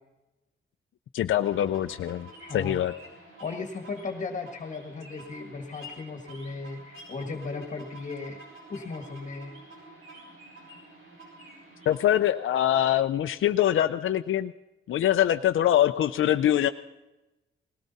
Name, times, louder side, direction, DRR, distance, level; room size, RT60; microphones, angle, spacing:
voice 1, 1.1-2.9 11.9-14.5 14.9-16.7, left 11 dB, 70° left, 7 dB, 0.5 m, -24 dB
sound 1, 1.3-12.4, right 1 dB, 80° right, 7.0 m, -49 dB
voice 2, 2.4-2.8 3.4-8.4 8.7-9.5, left 4 dB, 35° left, 4 dB, 1.6 m, -36 dB
19.5 x 17.5 x 4.1 m, 1.0 s
wide cardioid pair, 170°, 21 cm